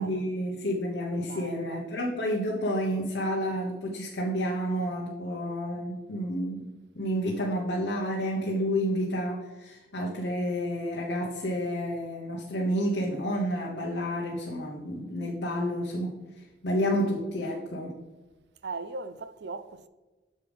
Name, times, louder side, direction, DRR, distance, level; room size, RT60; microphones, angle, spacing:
voice 1, 0.0-6.7 6.9-18.0, equal, 70° left, 1.0 m, -30 dB
voice 2, 1.2-1.9 18.6-19.9, right 3 dB, 70° right, 0.5 m, -39 dB
8.4 x 6.7 x 3.4 m
head